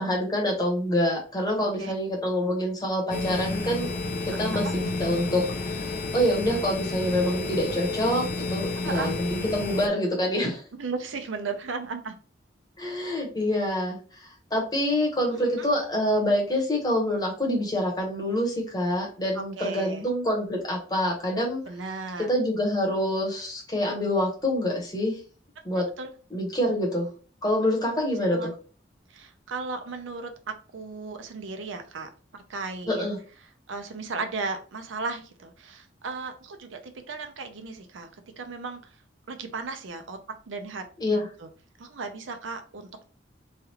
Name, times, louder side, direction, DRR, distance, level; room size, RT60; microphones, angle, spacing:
voice 1, 0.0-3.9 4.4-10.6 12.8-21.6 22.3-25.2 25.6-25.8 26.3-27.1 27.4-28.5 32.9-33.2 41.0-41.3, left 1 dB, 20° left, 0 dB, 0.9 m, -26 dB
sound 1, 3.1-9.9, left 3 dB, 45° left, 0.4 m, -31 dB
voice 2, 4.4-4.8 8.8-9.1 10.8-12.2 15.3-15.5 19.3-20.0 21.7-22.3 25.7-26.1 28.2-28.5 29.1-33.1 33.7-38.1 38.4-39.0 39.3-40.2 40.5-40.8 41.4-41.5 41.8-43.1, right 4 dB, 90° right, 7 dB, 0.5 m, -35 dB
3.2 x 2.3 x 2.9 m, 0.39 s
head